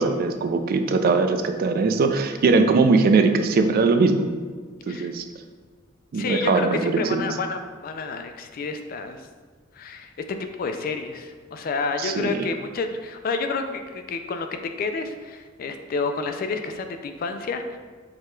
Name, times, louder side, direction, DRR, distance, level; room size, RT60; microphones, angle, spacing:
voice 1, 0.0-4.3 4.9-5.2 6.1-7.3 12.0-12.5, right 4 dB, 45° right, 7 dB, 0.3 m, -20 dB
voice 2, 6.1-9.2 9.7-14.5 14.8-17.8, left 4 dB, 45° left, 7 dB, 0.3 m, -29 dB
4.9 x 2.3 x 4.4 m, 1.5 s
head